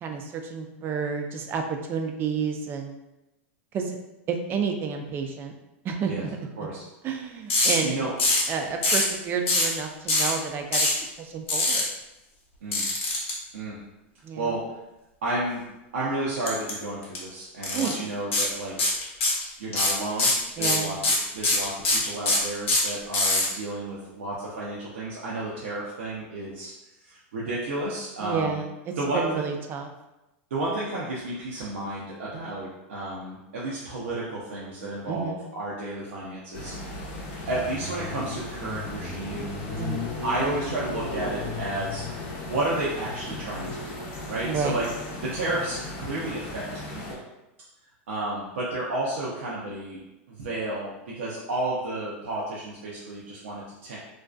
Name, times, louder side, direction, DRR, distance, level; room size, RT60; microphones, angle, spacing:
voice 1, 0.0-3.0 3.7-4.0 4.3-5.5 5.8-6.4 7.0-7.9 8.5-10.9 11.2-11.9 14.2-14.5 17.7-17.9 20.6-20.9 28.2-28.7 29.1-29.9 35.1-35.4 39.8-40.1 44.4-44.8, right 6 dB, 30° right, 4 dB, 0.4 m, -30 dB
sound 1, 7.5-7.8 8.2-8.5 8.8-9.1 9.5-9.7 10.1-10.3 10.7-11.0 11.5-11.8 12.7-13.3 16.5-16.7 17.0-17.2 17.6-17.9 18.3-18.5 18.8-19.4 19.7-23.5, left 2 dB, 85° left, 0.8 m, -22 dB
voice 2, 15.2-15.6 15.9-18.8 19.6-21.0 21.3-28.6 29.0-29.4 30.5-36.9 37.5-39.6 40.2-44.0 44.3-44.9 45.2-46.7 46.9-47.2 48.1-50.0 50.3-54.0, right 2 dB, 90° right, -6 dB, 0.5 m, -32 dB
sound 2, 36.5-47.1, left 2 dB, 60° left, 0.7 m, -35 dB
2.5 x 2.3 x 2.2 m, 0.97 s
supercardioid pair, 125°, 7 cm